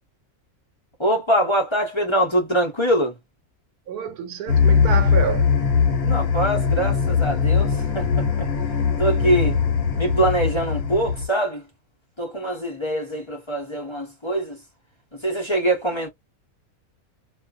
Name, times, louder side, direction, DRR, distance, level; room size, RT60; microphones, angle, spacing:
voice 1, 1.0-3.1 5.9-8.5 9.0-9.5 10.0-11.6 12.2-14.6 15.1-16.1, right 1 dB, 30° left, 0.6 m, -23 dB
voice 2, 3.9-5.5 9.2-9.5, right 7 dB, 85° right, 1.1 m, -28 dB
sound 1, 4.5-11.3, left 6 dB, 70° left, 1.2 m, -20 dB
2.5 x 2.3 x 2.3 m
omnidirectional pair, 1.6 m